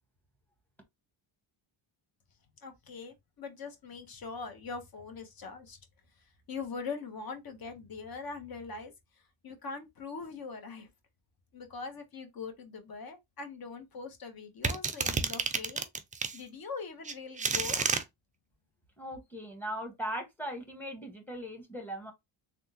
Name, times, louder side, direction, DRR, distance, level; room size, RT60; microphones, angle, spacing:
voice 1, 2.6-5.8 6.2-10.9 11.5-15.8 16.3-17.9, left 4 dB, 45° left, 1.1 m, -42 dB
sound 1, 14.6-16.4 17.0-18.0, right 5 dB, 20° right, 0.3 m, -30 dB
voice 2, 19.0-22.1, equal, 5° left, 1.2 m, -39 dB
3.5 x 2.3 x 2.8 m
cardioid pair, 95°, 49 cm